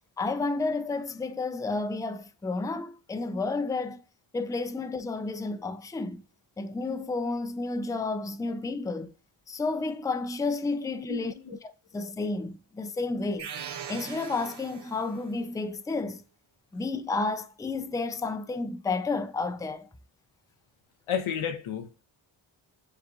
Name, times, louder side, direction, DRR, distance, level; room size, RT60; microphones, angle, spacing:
voice 1, 0.2-4.0 4.3-6.2 6.6-9.1 9.5-11.3 11.9-13.5 13.9-16.2 16.7-19.9, left 3 dB, 10° left, 0.4 m, -31 dB
voice 2, 11.1-11.6 21.1-22.0, left 8 dB, 90° left, 0.7 m, -32 dB
sound 1, 13.4-15.3, right 8 dB, 55° right, 0.7 m, -40 dB
7.0 x 2.5 x 2.5 m
cardioid pair, 45°, 48 cm